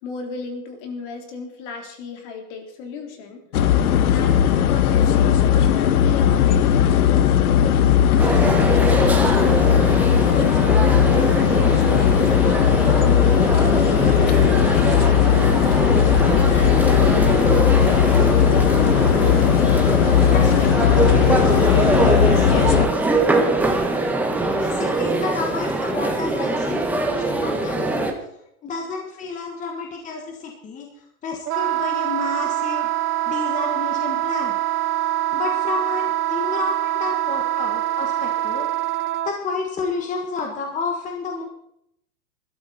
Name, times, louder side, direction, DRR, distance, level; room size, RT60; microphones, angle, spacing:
voice 1, 0.0-3.7 4.0-7.0 7.4-15.5 16.2-18.9 29.7-29.8 36.3-36.5, left 5 dB, 50° left, 4 dB, 3.8 m, -36 dB
sound 1, 3.5-22.9, left 9 dB, 75° left, 1.5 m, -17 dB
sound 2, 8.2-28.1, right 2 dB, 5° right, 1.4 m, -22 dB
voice 2, 20.2-23.1 24.6-28.2 28.6-32.9 33.3-34.5 35.3-38.7 39.2-41.4, left 4 dB, 15° left, 2 dB, 1.6 m, -31 dB
Wind instrument woodwind instrument, 31.5-39.3, right 14 dB, 90° right, 0.9 m, -24 dB
20.0 x 13.0 x 4.3 m, 0.75 s
supercardioid pair, 155°, 45 cm